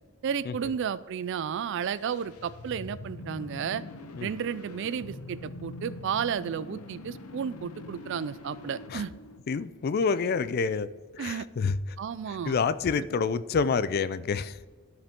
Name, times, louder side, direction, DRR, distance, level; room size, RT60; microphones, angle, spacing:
voice 1, 0.2-3.8 4.2-9.1 11.2-11.5 12.0-12.6 13.0-13.1, right 7 dB, 55° right, 17 dB, 0.3 m, -32 dB
sound 1, 1.8-9.9, left 2 dB, 85° left, 0.7 m, -44 dB
voice 2, 9.5-10.9 11.1-11.8 12.4-14.6, left 5 dB, 45° left, 15 dB, 0.3 m, -27 dB
13.5 x 4.9 x 3.6 m, 1.3 s
head